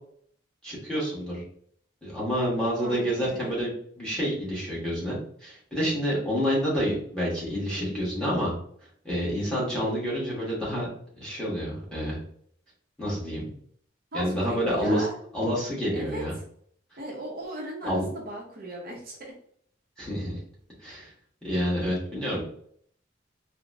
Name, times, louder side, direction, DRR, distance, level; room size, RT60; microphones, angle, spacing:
voice 1, 0.6-1.4 2.0-8.5 9.0-10.9 11.2-12.2 13.0-13.5 14.1-15.1 15.3-16.3 17.8-18.0 20.0-20.4 20.8-21.1 21.4-22.4, equal, 5° left, -7 dB, 1.3 m, -28 dB
voice 2, 2.7-3.5 14.1-15.1 15.9-16.2 17.0-19.3, right 1 dB, 50° right, -2 dB, 0.7 m, -37 dB
4.0 x 2.1 x 2.6 m, 0.63 s
head